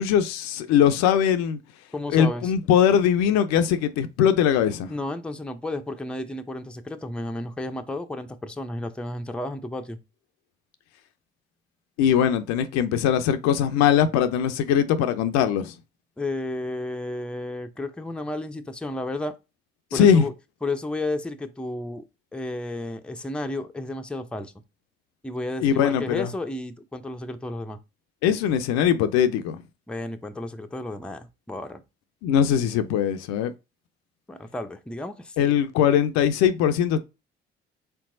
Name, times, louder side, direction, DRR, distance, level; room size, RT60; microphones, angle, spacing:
voice 1, 0.0-1.6 2.1-4.9 12.0-15.7 19.9-20.2 25.6-26.3 28.2-29.6 32.2-33.5 35.4-37.0, left 9 dB, 60° left, 0.5 m, -21 dB
voice 2, 1.9-2.5 4.9-10.0 16.2-19.3 19.9-20.3 20.6-22.0 22.3-24.5 25.2-27.8 29.9-31.8 34.3-35.5, left 2 dB, 5° left, 0.5 m, -32 dB
4.5 x 3.5 x 2.6 m
figure-of-eight pair, 50°, 30 cm